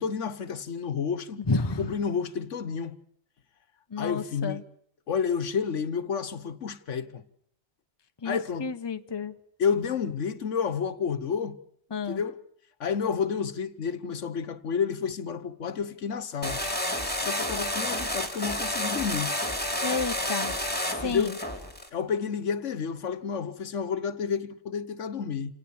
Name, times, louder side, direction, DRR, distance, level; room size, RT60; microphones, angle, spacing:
voice 1, 0.0-1.4 1.8-3.0 4.0-4.6 5.1-7.2 8.2-8.7 9.6-11.6 12.1-12.4 12.8-16.6 17.0-19.3 21.0-21.3 21.9-25.5, left 6 dB, 80° left, 1.4 m, -30 dB
voice 2, 1.5-1.9 3.9-4.6 8.2-9.3 11.9-12.2 16.6-16.7 19.8-20.5 21.0-21.4, left 4 dB, 25° left, 0.9 m, -31 dB
sound 1, 16.4-21.9, left 1 dB, 10° left, 3.1 m, -30 dB
28.0 x 18.0 x 7.2 m
omnidirectional pair, 1.3 m